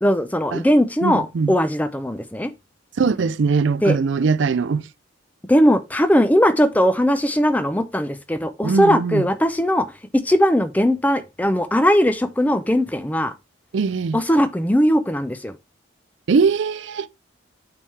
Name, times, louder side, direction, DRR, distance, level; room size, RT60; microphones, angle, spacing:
voice 1, 0.0-2.5 3.8-4.0 5.5-13.3 14.1-15.5, equal, 10° left, 0.5 m, -19 dB
voice 2, 1.0-1.5 3.0-4.9 8.6-9.3 13.7-14.2 16.3-17.1, right 5 dB, 70° right, 0.4 m, -21 dB
8.4 x 3.5 x 3.3 m
head